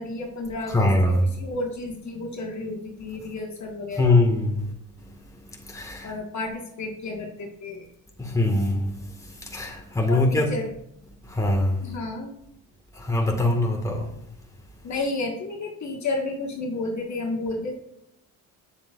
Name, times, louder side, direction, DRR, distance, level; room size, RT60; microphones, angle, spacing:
voice 1, 0.0-4.2 6.0-7.9 10.1-10.7 11.8-12.3 14.8-17.7, left 2 dB, 45° left, 1 dB, 1.9 m, -32 dB
voice 2, 0.7-1.3 4.0-4.7 5.7-6.1 8.2-9.0 9.4-10.5 11.2-11.8 13.0-14.1, left 2 dB, 10° left, 0 dB, 1.9 m, -22 dB
8.3 x 7.3 x 2.6 m, 0.77 s
supercardioid pair, 70°, 38 cm